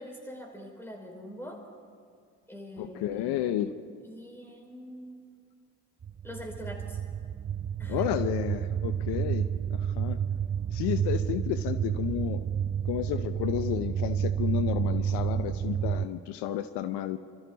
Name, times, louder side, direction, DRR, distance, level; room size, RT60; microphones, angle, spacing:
voice 1, 0.0-1.6 2.5-3.5 4.0-5.2 6.2-7.0 7.8-8.1, equal, 5° left, 0 dB, 5.1 m, -43 dB
voice 2, 2.8-3.7 7.9-10.2 10.7-12.4 12.8-17.2, left 12 dB, 80° left, 11 dB, 0.8 m, -32 dB
sound 1, 6.0-16.1, right 8 dB, 25° right, 0.5 m, -30 dB
26.0 x 14.0 x 4.0 m, 2.3 s
supercardioid pair, 60°, 40 cm